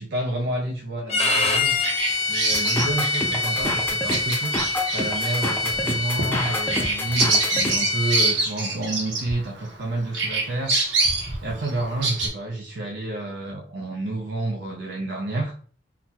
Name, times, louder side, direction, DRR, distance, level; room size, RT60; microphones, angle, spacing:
voice 1, 0.0-1.8 2.3-4.5 4.9-10.7 11.4-15.5, right 2 dB, 65° right, 0 dB, 0.5 m, -29 dB
Bowed string instrument, 1.1-8.3, left 3 dB, 35° left, 0.7 m, -26 dB
Bird vocalization bird call bird song, 1.4-9.8 10.1-12.3, right 2 dB, 85° right, 0.9 m, -26 dB
sound 1, 2.5-7.7, left 1 dB, 10° left, 0.4 m, -29 dB
3.9 x 2.1 x 2.8 m, 0.44 s
head